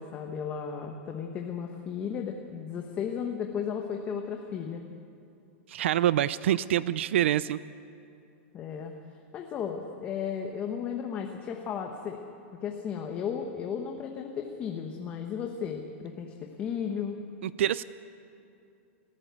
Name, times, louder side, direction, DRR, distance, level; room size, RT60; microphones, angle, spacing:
voice 1, 0.0-4.8 8.5-8.9 9.3-12.2 12.6-17.2, left 7 dB, 20° left, 3 dB, 1.1 m, -34 dB
voice 2, 5.7-7.6 17.4-17.8, right 12 dB, 60° right, 17 dB, 0.5 m, -26 dB
29.0 x 14.0 x 8.2 m, 2.6 s
supercardioid pair, 170°, 7 cm